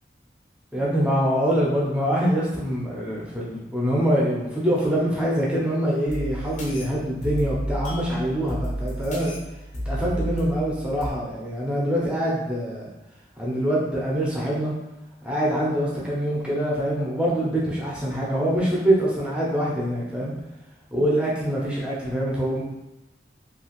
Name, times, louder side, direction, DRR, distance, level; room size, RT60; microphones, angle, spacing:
voice 1, 0.7-9.3 9.9-12.9 13.4-14.7 15.2-20.3 20.9-22.6, equal, 5° right, -5 dB, 0.6 m, -24 dB
sound 1, 6.1-11.1, equal, 40° left, 0.6 m, -32 dB
2.8 x 2.5 x 2.9 m, 0.97 s
head